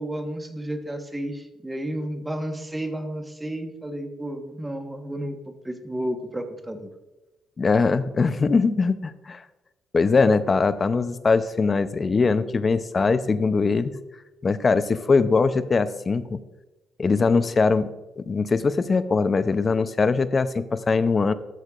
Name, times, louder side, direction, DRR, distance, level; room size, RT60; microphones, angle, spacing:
voice 1, 0.0-6.9, right 1 dB, 15° right, 6 dB, 1.2 m, -32 dB
voice 2, 7.6-9.4 9.9-14.0 14.4-16.4 17.0-17.9 18.2-21.3, left 4 dB, 35° left, 13 dB, 0.5 m, -21 dB
13.5 x 6.4 x 2.4 m, 1.1 s
supercardioid pair, 75°, 0 cm